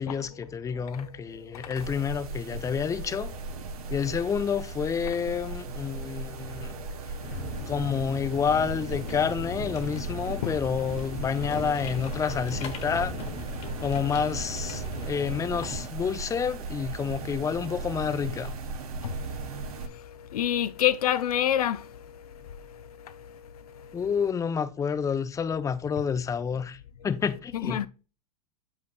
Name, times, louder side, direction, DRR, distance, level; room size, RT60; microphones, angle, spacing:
voice 1, 0.0-3.3 3.9-6.7 7.7-13.1 13.8-18.5 23.9-26.8 27.0-27.9, left 6 dB, 15° left, 0.6 m, -29 dB
voice 2, 0.7-1.1 1.3-1.8 6.0-6.3 6.8-6.9 10.4-10.6 19.0-24.1 27.5-27.9, left 11 dB, 75° left, 0.4 m, -31 dB
sound 1, 0.7-4.6 5.5-10.6 11.5-16.6 17.5-18.3, right 8 dB, 45° right, 2.3 m, -54 dB
sound 2, 1.7-19.9, right 4 dB, 70° right, 1.2 m, -37 dB
sound 3, 7.2-15.9, left 3 dB, 35° left, 1.3 m, -38 dB
8.0 x 5.5 x 2.2 m
hypercardioid pair, 95°, 20 cm